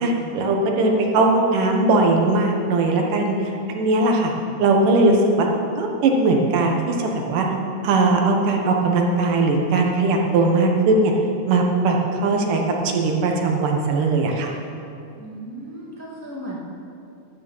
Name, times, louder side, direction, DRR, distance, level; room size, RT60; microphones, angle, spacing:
voice 1, 0.0-4.3 4.6-5.5 5.8-7.5 7.8-11.1 11.5-14.6, right 2 dB, 90° right, 1 dB, 2.9 m, -19 dB
voice 2, 15.2-16.6, right 1 dB, 5° left, -5 dB, 1.5 m, -35 dB
11.5 x 9.2 x 7.2 m, 2.6 s
omnidirectional pair, 3.6 m